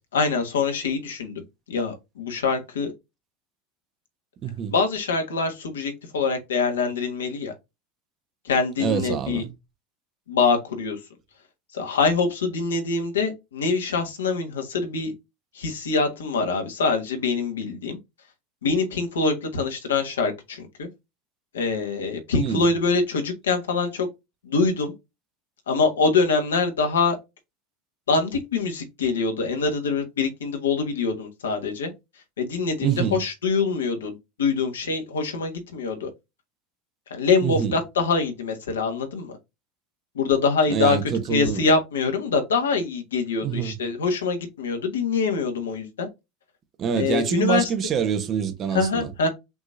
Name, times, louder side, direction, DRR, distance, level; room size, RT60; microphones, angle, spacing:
voice 1, 0.1-1.4 1.7-2.9 4.7-7.5 8.4-9.4 10.3-11.0 11.7-15.1 15.5-18.0 18.6-20.9 21.5-24.1 24.4-24.9 25.7-27.2 28.1-31.9 32.4-36.1 37.1-39.3 40.1-41.0 41.3-46.1 47.0-47.7 48.7-49.3, left 4 dB, 80° left, 1.4 m, -24 dB
voice 2, 4.4-4.7 8.8-9.5 22.4-22.7 32.8-33.2 37.4-37.8 40.7-41.7 43.4-43.7 46.8-49.1, right 8 dB, 40° right, 1.1 m, -26 dB
6.1 x 3.1 x 2.6 m
hypercardioid pair, 80°, 0 cm